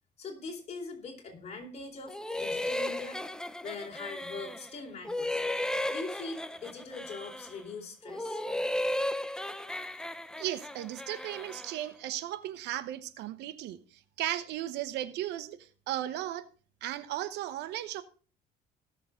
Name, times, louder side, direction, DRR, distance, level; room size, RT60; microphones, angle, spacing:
voice 1, 0.2-3.2 3.6-5.4 5.9-8.4, left 4 dB, 40° left, 4.1 m, -42 dB
sound 1, 2.1-4.7 5.0-7.6 8.0-11.8, left 1 dB, 5° left, 0.7 m, -35 dB
voice 2, 10.4-13.8 14.2-15.6 15.9-16.5 16.8-18.0, right 13 dB, 85° right, 1.0 m, -35 dB
18.0 x 6.9 x 3.7 m
cardioid pair, 110°, 17 cm